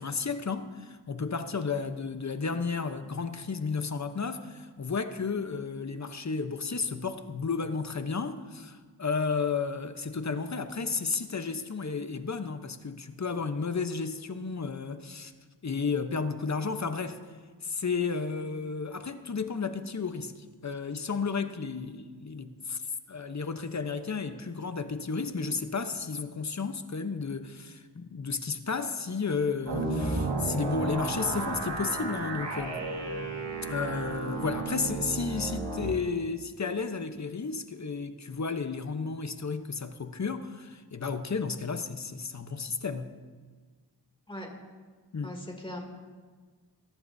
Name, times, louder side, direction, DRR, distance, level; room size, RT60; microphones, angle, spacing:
voice 1, 0.0-15.3 15.6-17.2 17.6-22.8 23.1-32.8 33.7-43.1 45.1-45.4, left 5 dB, 40° left, 0.9 m, -32 dB
sound 1, 29.7-35.9, right 3 dB, 85° right, 1.9 m, -33 dB
voice 2, 45.2-45.8, left 1 dB, 10° left, 2.8 m, -39 dB
22.5 x 11.5 x 2.7 m
cardioid pair, 55°, 43 cm